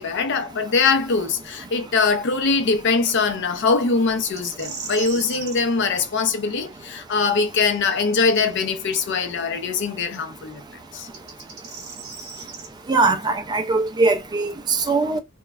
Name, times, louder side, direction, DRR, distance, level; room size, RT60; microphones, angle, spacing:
voice 1, 0.0-10.6 10.9-11.1, left 4 dB, 55° left, 0.5 m, -22 dB
sound 1, 4.3-5.6 8.8-8.9 11.0-12.7, right 5 dB, 50° right, 0.9 m, -36 dB
voice 2, 12.9-15.2, right 3 dB, 20° right, 0.3 m, -21 dB
3.1 x 2.2 x 2.3 m
head